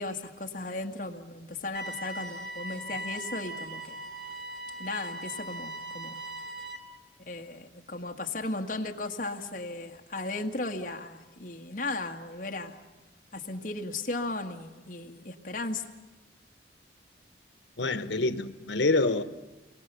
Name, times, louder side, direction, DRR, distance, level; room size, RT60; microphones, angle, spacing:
voice 1, 0.0-4.0 4.8-6.2 7.3-12.8 13.3-15.9, left 2 dB, 45° left, 1.8 m, -36 dB
sound 1, 1.7-6.8, right 1 dB, 60° right, 2.7 m, -39 dB
voice 2, 17.8-19.2, left 3 dB, 85° left, 1.2 m, -26 dB
30.0 x 22.5 x 6.9 m
head